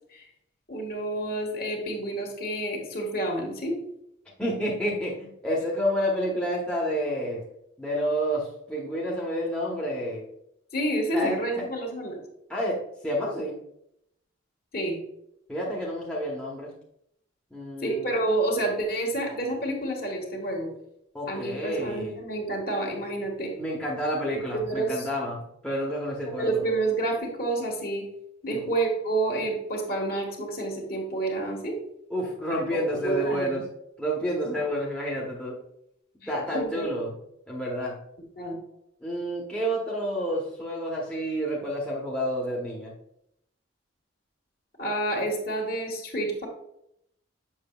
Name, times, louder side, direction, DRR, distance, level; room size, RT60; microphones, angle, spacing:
voice 1, 0.7-3.8 10.7-12.2 14.7-15.0 17.8-20.7 21.3-23.5 24.3-25.1 26.2-28.0 28.4-31.8 32.7-33.6 36.5-36.9 38.4-38.6 44.8-46.5, right 2 dB, 45° left, 0 dB, 1.6 m, -29 dB
voice 2, 4.4-7.4 7.8-10.2 11.1-11.4 12.5-13.6 15.5-16.7 17.5-18.1 21.1-22.1 23.6-26.6 28.5-28.6 32.1-33.6 34.0-35.6 36.2-37.1 37.5-38.0 39.0-42.9, equal, 5° left, -5 dB, 1.0 m, -29 dB
7.2 x 6.1 x 2.3 m, 0.77 s
head